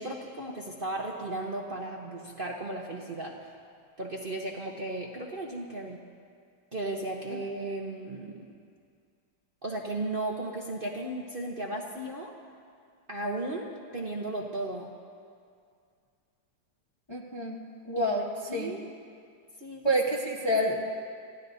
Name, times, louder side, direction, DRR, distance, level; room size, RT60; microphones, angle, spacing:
voice 1, 0.0-3.5 4.0-6.0 6.7-8.5 9.6-12.3 13.1-14.9 18.0-18.2 18.5-18.8 19.6-19.9, right 2 dB, 35° right, -1 dB, 1.0 m, -35 dB
voice 2, 17.1-17.6 17.9-18.7 19.8-20.9, equal, 20° left, -2 dB, 0.8 m, -28 dB
28.0 x 15.0 x 2.7 m, 2.2 s
omnidirectional pair, 2.0 m